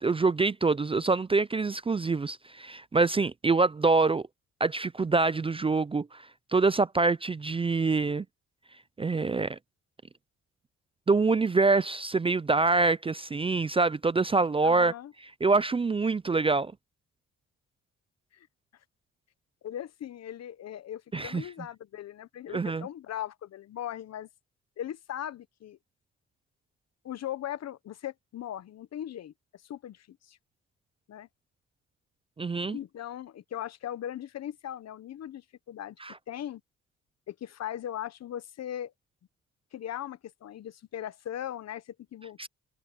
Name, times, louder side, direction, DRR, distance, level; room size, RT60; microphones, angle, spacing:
voice 1, 0.0-4.3 4.6-6.2 6.5-8.2 9.0-9.6 11.1-14.9 15.4-16.7 21.1-21.4 22.5-22.9 32.4-32.8 36.0-36.1 42.4-42.5, right 3 dB, 20° right, 0.4 m, -25 dB
voice 2, 14.6-15.1 18.3-18.5 19.6-24.3 24.8-25.8 27.0-30.4 31.1-31.3 32.6-36.0 36.3-36.6 37.3-38.9 39.7-42.5, left 11 dB, 60° left, 1.0 m, -39 dB
cardioid pair, 90°, 30 cm